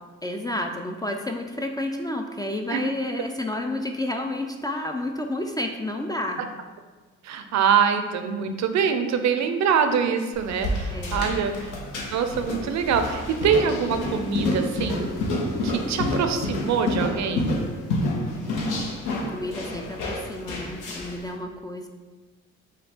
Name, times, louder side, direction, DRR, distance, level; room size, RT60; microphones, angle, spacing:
voice 1, 0.2-6.4 10.9-11.3 19.1-21.9, left 1 dB, 15° left, 3 dB, 0.3 m, -30 dB
voice 2, 7.2-11.7 12.1-15.1 15.6-17.5, right 6 dB, 65° right, 7 dB, 0.5 m, -24 dB
sound 1, 10.3-21.2, left 1 dB, 80° left, 1.0 m, -29 dB
5.1 x 2.3 x 4.3 m, 1.3 s
cardioid pair, 90°, 30 cm